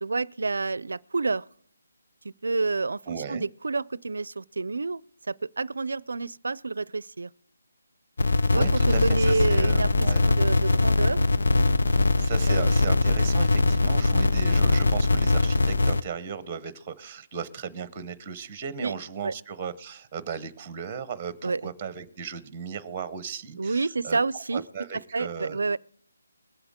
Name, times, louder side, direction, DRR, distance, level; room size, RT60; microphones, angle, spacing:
voice 1, 0.0-1.4 2.2-5.0 5.3-7.3 8.5-11.2 12.5-12.7 18.8-19.0 19.2-19.3 21.4-21.6 23.6-24.6 25.1-25.8, right 3 dB, 75° right, 0.4 m, -29 dB
voice 2, 3.1-3.5 8.5-10.2 12.2-24.2 24.5-25.7, right 6 dB, 15° right, 0.8 m, -36 dB
sound 1, 8.2-16.0, left 2 dB, 70° left, 0.6 m, -22 dB
22.0 x 8.0 x 3.6 m
hypercardioid pair, 170°, 0 cm